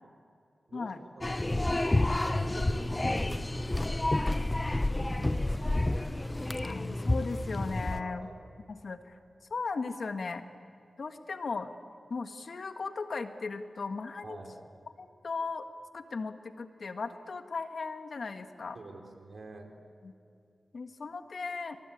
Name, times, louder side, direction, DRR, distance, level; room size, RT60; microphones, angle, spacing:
voice 1, 0.7-1.8 2.2-4.6 5.1-6.1 7.9-8.3 14.2-14.6 18.7-19.7, right 3 dB, 60° right, 3 dB, 3.8 m, -48 dB
sound 1, 1.2-8.0, left 1 dB, 25° left, 0.9 m, -29 dB
voice 2, 6.6-8.3 8.7-9.2 9.5-10.4 11.0-11.7 12.1-14.4 15.0-15.7 15.9-18.8 20.0-20.1 20.7-21.8, left 4 dB, 65° left, 8 dB, 1.6 m, -37 dB
27.5 x 24.5 x 8.8 m, 2.6 s
cardioid pair, 65°, 0 cm